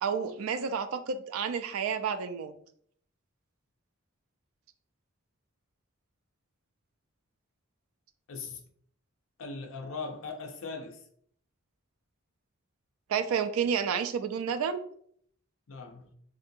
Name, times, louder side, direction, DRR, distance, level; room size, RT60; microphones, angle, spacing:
voice 1, 0.0-2.5 13.1-14.8, right 7 dB, 80° right, 0.3 m, -30 dB
voice 2, 8.3-8.6 9.4-11.0 15.7-16.1, left 4 dB, 65° left, 0.5 m, -39 dB
3.6 x 2.5 x 2.6 m
head